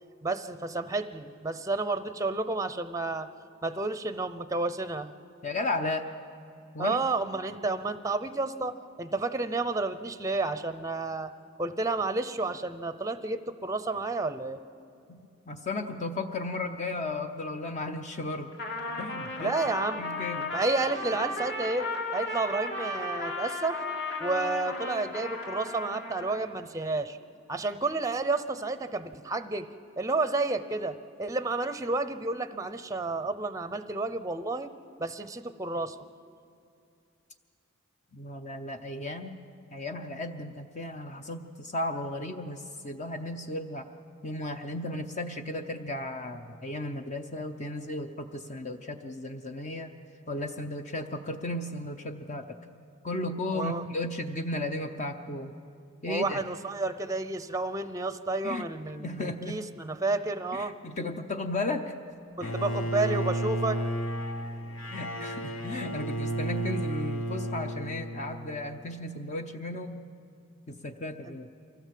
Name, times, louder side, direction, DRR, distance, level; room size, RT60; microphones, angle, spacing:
voice 1, 0.2-3.3 3.6-5.1 6.8-11.3 11.6-14.6 19.4-20.0 20.5-21.9 22.1-23.8 24.2-27.2 27.5-29.7 30.0-34.7 35.0-36.0 53.5-53.8 56.1-60.7 62.4-63.8 71.3-71.4, right 3 dB, 15° right, 11 dB, 0.7 m, -31 dB
voice 2, 5.4-6.1 6.7-7.0 15.1-15.2 15.5-18.5 19.0-19.6 20.0-20.5 38.1-39.4 39.7-43.9 44.2-49.9 50.3-52.6 53.0-55.5 56.0-56.4 58.4-58.7 59.0-59.6 60.5-61.9 62.4-62.6 64.9-70.1 70.7-71.5, left 2 dB, 35° left, 6 dB, 0.8 m, -35 dB
Trumpet, 18.5-26.4, left 2 dB, 55° left, 3.1 m, -35 dB
Bowed string instrument, 62.4-68.5, right 1 dB, 75° left, 1.1 m, -32 dB
24.0 x 16.0 x 7.6 m, 2.5 s
head